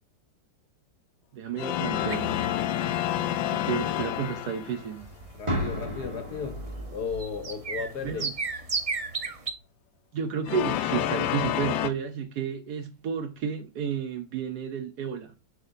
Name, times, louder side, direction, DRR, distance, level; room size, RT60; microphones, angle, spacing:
voice 1, 1.3-2.4 3.5-5.1 8.0-8.3 10.1-15.4, right 7 dB, 65° right, 1.3 m, -32 dB
sound 1, 1.5-4.9 10.5-11.9, left 11 dB, 90° left, 1.3 m, -28 dB
sound 2, 2.1-9.5, right 4 dB, 45° right, 0.4 m, -36 dB
voice 2, 5.3-6.6 6.9-8.3, left 6 dB, 60° left, 1.7 m, -34 dB
sound 3, 5.5-9.4, equal, 15° right, 1.8 m, -36 dB
6.8 x 6.1 x 2.6 m
omnidirectional pair, 2.0 m